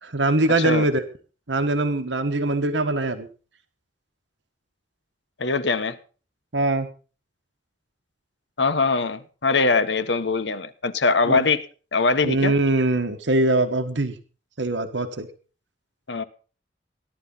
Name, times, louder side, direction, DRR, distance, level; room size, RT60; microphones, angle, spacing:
voice 1, 0.0-1.0 1.5-3.3 6.5-6.9 11.2-11.4 12.2-14.1 14.6-15.3, right 2 dB, 90° right, 1.6 m, -22 dB
voice 2, 5.4-6.0 8.6-11.6 11.9-12.5 16.1-16.2, left 4 dB, 80° left, 1.3 m, -22 dB
16.0 x 11.5 x 5.6 m
head